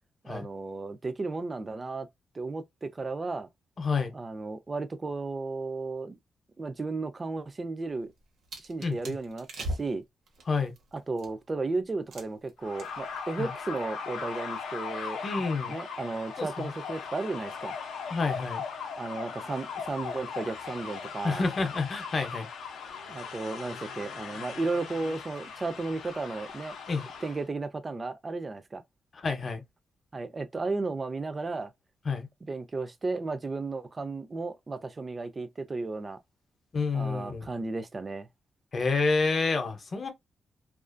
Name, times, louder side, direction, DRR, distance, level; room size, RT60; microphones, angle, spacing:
voice 1, 0.2-2.1 2.3-3.5 4.1-6.2 6.6-8.1 8.6-10.0 10.9-15.2 15.7-17.8 19.0-21.4 23.1-26.8 27.2-28.8 30.1-31.7 32.5-36.2 36.9-38.3, right 3 dB, 30° right, 0.3 m, -34 dB
voice 2, 3.8-4.1 8.8-9.1 10.5-10.7 13.4-13.5 15.2-15.8 16.4-16.7 18.1-18.6 21.2-22.5 26.9-27.1 29.1-29.6 32.1-32.3 36.7-37.5 38.7-40.1, left 4 dB, 40° left, 0.6 m, -29 dB
sound 1, 7.9-11.5 12.1-12.5 12.8-13.2 13.5-13.7, right 1 dB, 85° right, 0.8 m, -40 dB
sound 2, 12.6-27.4, left 6 dB, 90° left, 0.4 m, -39 dB
2.4 x 2.1 x 2.5 m
cardioid pair, 115°, 0 cm